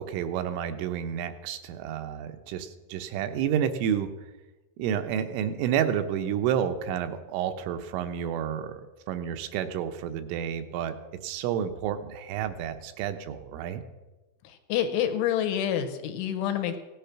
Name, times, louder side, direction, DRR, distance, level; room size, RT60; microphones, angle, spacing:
voice 1, 0.0-4.1 4.8-10.9 11.2-13.8, right 9 dB, 80° right, 8 dB, 3.4 m, -30 dB
voice 2, 14.4-16.8, left 10 dB, 80° left, 8 dB, 3.4 m, -28 dB
17.0 x 10.5 x 5.9 m, 1.1 s
omnidirectional pair, 5.7 m